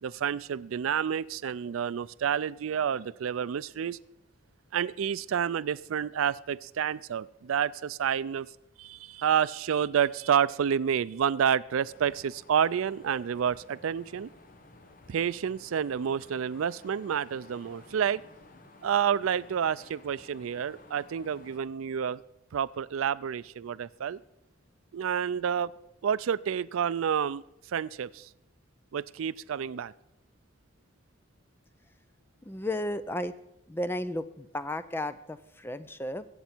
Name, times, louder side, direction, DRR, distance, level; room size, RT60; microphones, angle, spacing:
voice 1, 0.0-4.0 4.7-8.5 8.8-14.3 15.1-18.2 18.8-22.2 22.5-24.2 24.9-25.7 26.0-27.4 27.7-28.3 28.9-29.9, right 8 dB, 85° right, 18 dB, 0.4 m, -29 dB
sound 1, 11.8-21.6, left 2 dB, 45° left, 1.2 m, -54 dB
voice 2, 32.4-33.3 33.7-36.3, left 1 dB, 10° left, 12 dB, 0.4 m, -33 dB
22.0 x 8.2 x 4.5 m, 0.85 s
head